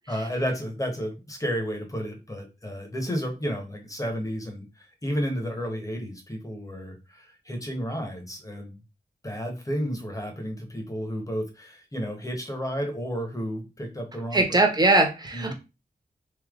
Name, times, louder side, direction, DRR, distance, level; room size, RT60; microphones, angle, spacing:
voice 1, 0.1-8.8 9.2-14.6 15.3-15.5, equal, 20° left, 3 dB, 1.2 m, -32 dB
voice 2, 14.3-15.5, right 2 dB, 25° right, 4 dB, 0.9 m, -21 dB
3.3 x 2.9 x 3.7 m, 0.28 s
wide cardioid pair, 95°, 17 cm